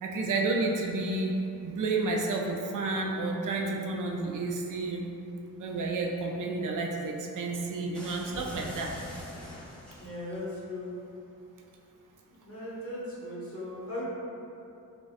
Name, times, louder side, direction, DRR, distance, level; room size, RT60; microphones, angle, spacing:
voice 1, 0.0-1.4 1.6-5.0 5.6-8.9, right 3 dB, 65° right, 0 dB, 0.5 m, -31 dB
sound 1, 7.9-10.4, left 1 dB, 5° left, 0.8 m, -44 dB
voice 2, 10.0-10.9 12.4-14.0, left 1 dB, 40° left, -8 dB, 1.2 m, -38 dB
5.1 x 2.2 x 2.4 m, 2.7 s
wide cardioid pair, 115°, 34 cm